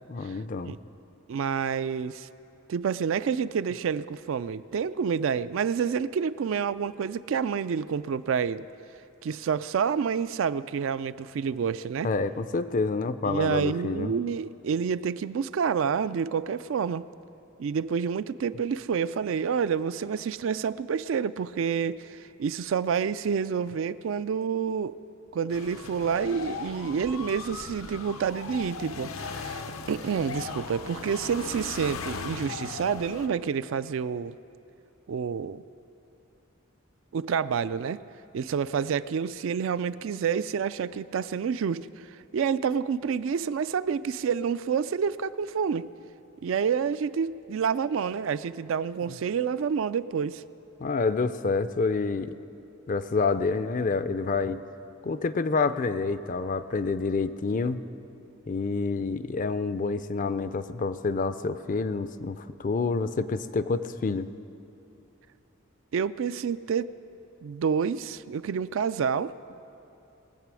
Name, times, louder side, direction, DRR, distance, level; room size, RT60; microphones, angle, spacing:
voice 1, 0.1-0.7 12.0-14.1 50.8-52.3 52.9-54.6 55.0-57.8 58.5-64.3, left 4 dB, 40° left, 13 dB, 0.4 m, -28 dB
voice 2, 1.3-2.3 2.7-8.7 9.2-12.1 13.2-17.1 17.6-24.9 25.3-34.3 35.1-35.6 37.1-38.0 38.3-45.9 46.4-50.4 65.9-66.9 67.4-69.3, right 6 dB, 65° right, 15 dB, 0.3 m, -28 dB
sound 1, 25.5-33.3, left 4 dB, 80° left, 0.8 m, -38 dB
20.5 x 8.3 x 6.2 m, 2.8 s
head